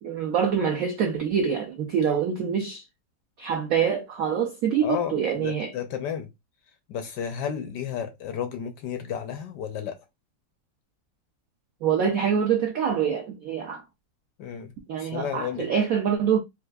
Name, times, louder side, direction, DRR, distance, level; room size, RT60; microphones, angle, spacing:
voice 1, 0.0-2.8 3.4-5.7 11.8-13.8 14.9-16.4, right 7 dB, 80° right, 0.7 m, -25 dB
voice 2, 4.7-6.3 6.9-10.0 14.4-14.7 15.0-15.7, left 8 dB, 70° left, 1.0 m, -32 dB
4.4 x 2.4 x 2.2 m
omnidirectional pair, 2.1 m